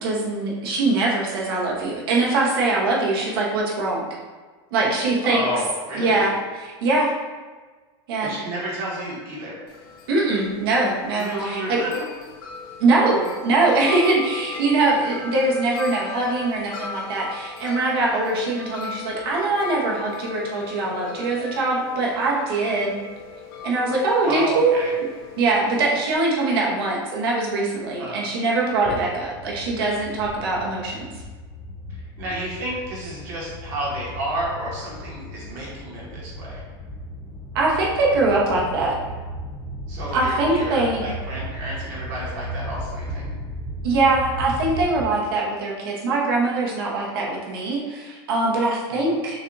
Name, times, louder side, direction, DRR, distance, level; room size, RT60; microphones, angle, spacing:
voice 1, 0.0-4.0 4.7-5.4 6.0-7.1 8.1-8.3 10.1-11.8 12.8-22.9 23.6-24.8 25.4-31.1 37.5-39.0 40.1-41.1 43.8-49.4, right 2 dB, 65° right, -3 dB, 1.1 m, -22 dB
voice 2, 5.2-6.3 8.2-9.6 11.1-12.1 24.2-24.9 28.0-28.3 32.0-36.6 39.9-43.3 48.9-49.1, right 1 dB, 40° right, -5 dB, 1.2 m, -31 dB
Wind chime, 9.7-26.1, left 5 dB, 55° left, 0.6 m, -38 dB
sound 1, 28.9-45.1, equal, ahead, 0.4 m, -35 dB
6.1 x 2.4 x 2.7 m, 1.4 s
supercardioid pair, 175°, 13 cm